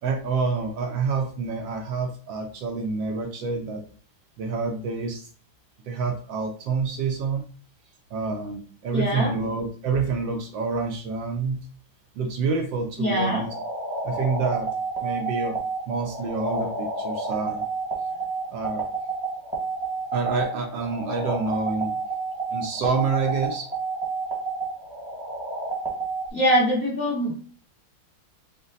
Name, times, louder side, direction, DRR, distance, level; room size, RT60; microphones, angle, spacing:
voice 1, 0.0-3.8 4.4-5.3 5.9-7.4 8.1-11.7 12.1-13.5 14.0-14.7 15.0-15.6 15.9-17.6 18.5-18.9 20.1-21.9 22.5-23.7, right 4 dB, 70° right, 3 dB, 1.3 m, -27 dB
voice 2, 8.9-9.3 13.0-13.4 26.3-27.4, equal, 35° left, -5 dB, 1.3 m, -23 dB
sound 1, 13.5-26.2, right 3 dB, ahead, 0.9 m, -30 dB
5.1 x 2.2 x 3.9 m, 0.43 s
omnidirectional pair, 2.3 m